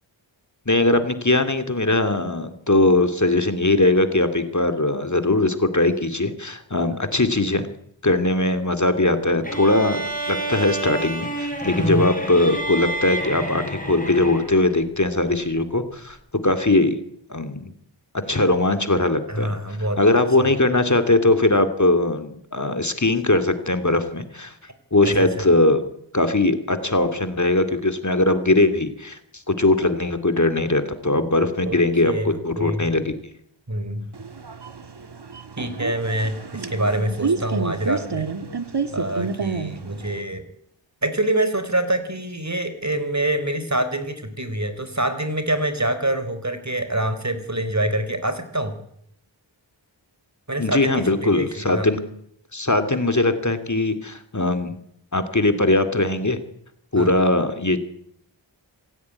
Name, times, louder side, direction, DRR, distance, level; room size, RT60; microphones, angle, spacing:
voice 1, 0.7-7.7 8.0-10.0 10.3-16.2 16.4-17.0 17.3-17.7 18.3-19.5 20.0-24.5 24.9-25.8 26.1-33.1 50.6-52.0 52.5-54.8 55.1-56.4 56.9-57.8, left 2 dB, 40° left, 9 dB, 2.6 m, -20 dB
sound 1, 9.4-14.7, right 1 dB, 20° left, 5.5 m, -28 dB
voice 2, 19.3-20.0 20.4-20.5 24.6-24.7 25.0-25.5 31.6-31.8 32.0-32.9 33.7-34.1 35.6-38.3 38.9-40.4 41.0-48.8 50.5-51.9 56.9-57.1, right 1 dB, 35° right, 10 dB, 4.0 m, -26 dB
sound 2, 34.1-40.2, right 5 dB, 60° right, 1.9 m, -29 dB
27.0 x 16.0 x 9.6 m, 0.73 s
wide cardioid pair, 50°, 45 cm